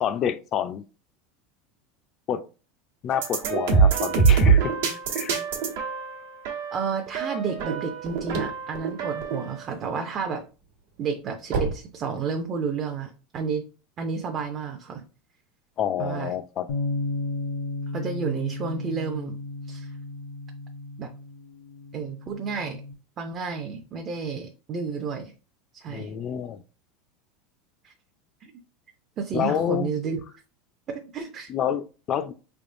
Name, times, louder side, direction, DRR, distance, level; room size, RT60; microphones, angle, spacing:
voice 1, 0.0-0.8 2.3-2.4 3.0-4.7 5.1-5.4 15.8-16.7 25.9-26.6 29.3-29.9 31.5-32.3, left 9 dB, 35° left, 0.4 m, -28 dB
sound 1, 3.1-9.6, right 5 dB, 90° right, 1.1 m, -24 dB
voice 2, 6.7-10.4 11.0-13.7 14.0-15.0 16.0-16.3 17.9-19.4 19.7-19.9 21.0-21.1 21.9-22.8 23.2-25.3 25.7-26.1 27.8-27.9 28.4-28.5 29.2-30.2 30.9-31.5, right 5 dB, 35° right, 0.5 m, -31 dB
sound 2, 8.0-10.0 10.5-12.7, right 3 dB, 65° right, 1.2 m, -32 dB
Bass guitar, 16.7-22.9, left 2 dB, 80° left, 0.7 m, -34 dB
4.5 x 3.4 x 2.6 m
supercardioid pair, 145°, 0 cm